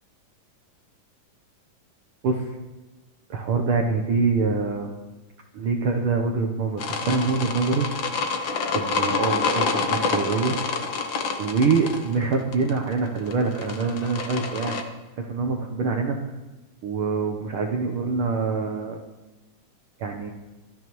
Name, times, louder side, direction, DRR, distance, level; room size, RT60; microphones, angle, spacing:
voice 1, 2.2-2.5 3.3-4.9 5.5-7.9 8.7-10.6 11.4-14.8 15.2-16.2 16.8-19.0 20.0-20.3, right 4 dB, 85° right, 2 dB, 1.2 m, -25 dB
sound 1, 6.8-14.8, left 4 dB, 80° left, 1.0 m, -27 dB
19.0 x 12.5 x 3.1 m, 1.1 s
omnidirectional pair, 3.8 m